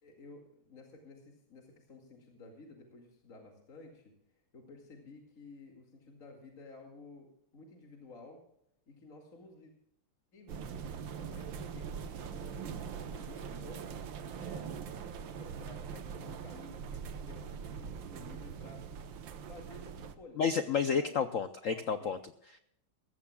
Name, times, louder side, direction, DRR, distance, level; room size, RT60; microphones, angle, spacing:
voice 1, 0.0-4.1 4.5-8.4 8.9-9.7 10.3-14.7 15.4-18.8 19.5-20.4 21.0-21.3 21.7-22.1, left 3 dB, 40° left, 1 dB, 2.6 m, -53 dB
sound 1, 10.5-20.2, right 7 dB, 70° right, 1.7 m, -42 dB
voice 2, 20.4-22.2, left 6 dB, 75° left, 10 dB, 0.7 m, -30 dB
20.0 x 16.0 x 2.3 m, 0.74 s
omnidirectional pair, 2.2 m